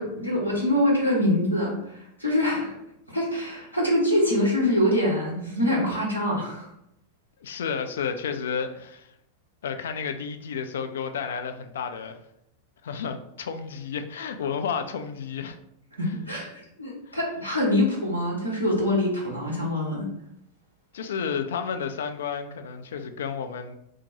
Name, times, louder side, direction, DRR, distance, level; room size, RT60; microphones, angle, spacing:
voice 1, 0.0-2.8 3.1-6.7 16.0-16.5 16.8-20.1, left 1 dB, 85° right, -5 dB, 1.2 m, -24 dB
voice 2, 7.4-9.1 9.6-12.2 12.8-15.6 17.1-17.2 20.9-23.8, left 6 dB, 60° left, 8 dB, 0.3 m, -31 dB
2.7 x 2.1 x 4.1 m, 0.77 s
figure-of-eight pair, 90°, 0 cm